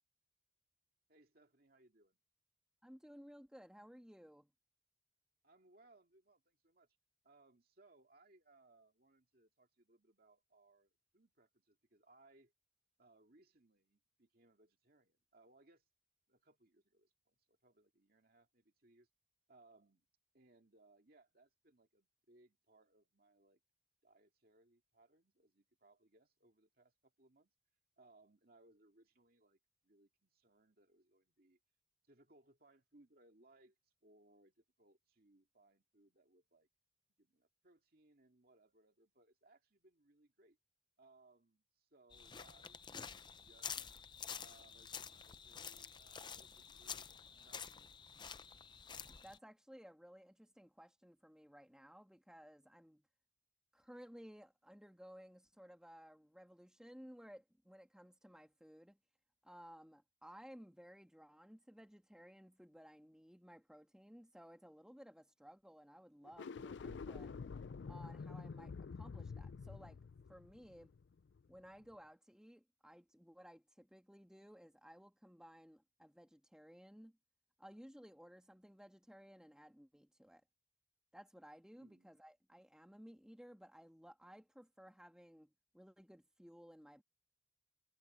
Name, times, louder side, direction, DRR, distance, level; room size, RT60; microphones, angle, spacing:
voice 1, 1.1-2.2 5.4-6.9 7.2-12.5 13.0-15.8 16.3-19.1 19.5-20.1 20.3-23.6 24.0-27.5 28.0-31.6 32.0-36.7 37.2-40.6 41.0-43.9 44.4-47.9 81.7-82.1, right 2 dB, 50° right, 2.3 m, -69 dB
voice 2, 2.8-4.5 49.1-53.1 53.7-59.0 59.4-67.3 67.9-70.9 71.5-77.2 77.6-80.4 81.1-87.0, equal, 5° right, 2.0 m, -58 dB
sound 1, 42.1-49.4, left 7 dB, 25° left, 0.6 m, -49 dB
sound 2, 66.3-71.6, left 5 dB, 65° left, 0.4 m, -48 dB
head